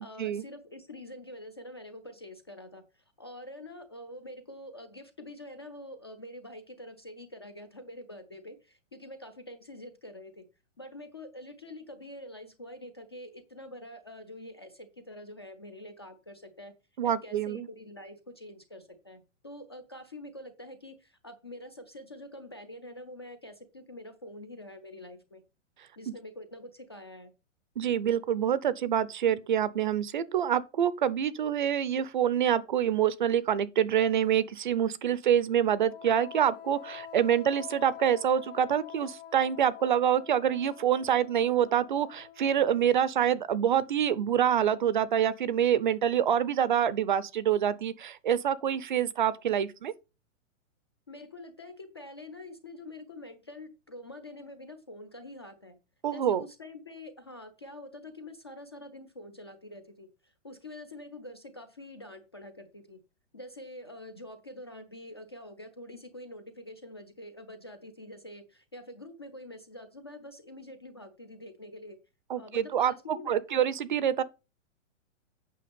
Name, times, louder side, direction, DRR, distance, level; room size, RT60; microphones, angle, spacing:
voice 1, 0.0-10.4 10.8-16.7 17.0-25.4 26.0-27.3 51.1-55.8 56.1-63.0 63.3-72.0 72.3-73.6, left 1 dB, 20° left, 0.4 m, -46 dB
voice 2, 17.0-17.7 26.1-26.2 27.8-49.9 56.0-56.4 72.3-72.9 73.3-74.2, right 9 dB, 40° right, 0.5 m, -26 dB
Wind instrument woodwind instrument, 35.9-43.2, left 10 dB, 45° left, 1.6 m, -47 dB
8.5 x 5.9 x 5.1 m
hypercardioid pair, 170°, 38 cm